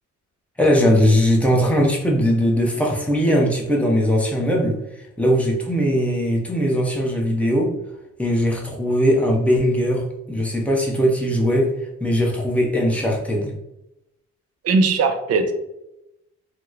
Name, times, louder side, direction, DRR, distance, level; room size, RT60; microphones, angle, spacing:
voice 1, 0.6-4.8 5.2-7.7 8.2-11.7 12.0-13.5, equal, 5° left, -2 dB, 0.8 m, -19 dB
voice 2, 14.6-15.5, right 4 dB, 55° right, 7 dB, 0.5 m, -19 dB
2.9 x 2.1 x 3.6 m, 0.89 s
cardioid pair, 90°, 30 cm